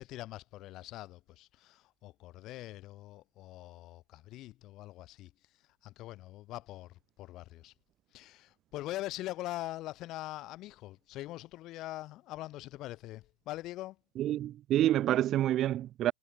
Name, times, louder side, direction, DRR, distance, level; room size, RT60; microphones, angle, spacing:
voice 1, 0.0-7.7 8.1-14.0, left 16 dB, 40° left, 4.3 m, -43 dB
voice 2, 14.2-16.1, right 12 dB, 35° right, 0.8 m, -28 dB
figure-of-eight pair, 95°, 0 cm